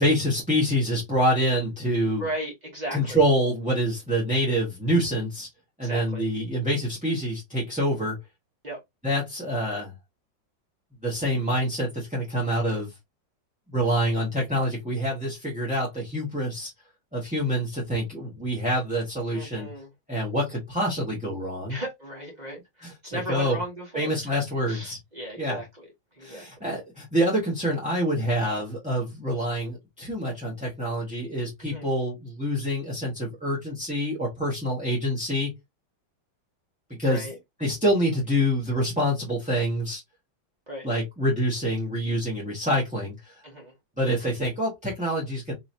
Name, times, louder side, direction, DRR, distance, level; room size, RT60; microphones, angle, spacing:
voice 1, 0.0-2.3 2.9-5.5 5.8-8.1 9.0-9.9 11.0-12.9 13.7-16.7 17.1-19.7 20.1-21.8 22.8-23.6 23.9-25.0 25.4-25.6 26.2-35.5 37.0-37.3 37.6-40.0 40.8-43.3 44.0-45.5, equal, 5° right, 0.9 m, -26 dB
voice 2, 2.2-3.2 5.8-6.2 8.6-8.8 19.3-19.9 21.7-22.6 23.0-24.4 24.7-25.7 26.1-26.5 31.7-31.9 37.0-37.4 40.7-40.9 43.4-43.7, right 1 dB, 25° right, 1.2 m, -36 dB
3.9 x 3.0 x 2.6 m
omnidirectional pair, 2.1 m